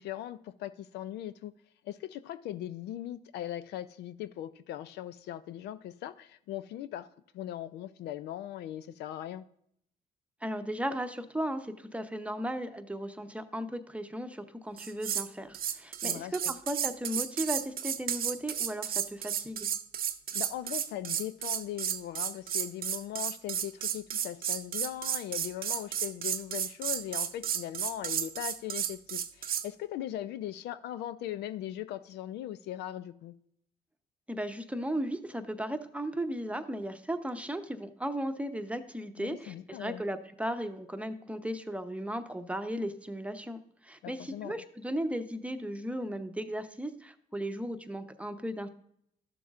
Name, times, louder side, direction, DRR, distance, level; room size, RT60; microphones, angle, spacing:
voice 1, 0.0-1.5 1.8-7.1 7.3-9.4 16.0-16.5 20.3-33.3 39.2-40.0 44.0-44.6, left 12 dB, 80° left, 0.4 m, -39 dB
voice 2, 10.4-19.7 34.3-48.7, right 1 dB, 5° right, 0.8 m, -36 dB
sound 1, 14.8-15.3 15.5-29.7, right 9 dB, 60° right, 0.6 m, -33 dB
12.5 x 6.9 x 2.5 m
supercardioid pair, 65°, 17 cm